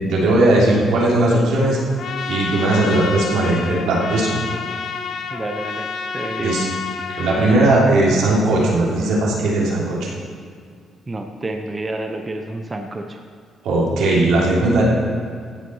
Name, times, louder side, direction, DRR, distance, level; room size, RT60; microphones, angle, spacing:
voice 1, 0.0-1.8 2.3-4.4 6.4-6.7 7.2-10.1 13.6-14.8, right 2 dB, 85° right, -4 dB, 3.1 m, -18 dB
Trumpet, 2.0-7.8, left 5 dB, 65° left, 0.9 m, -29 dB
voice 2, 5.3-5.9 6.1-6.6 11.1-13.2, right 2 dB, 25° right, 4 dB, 0.9 m, -29 dB
15.0 x 5.9 x 5.7 m, 2.2 s
cardioid pair, 90°, 0 cm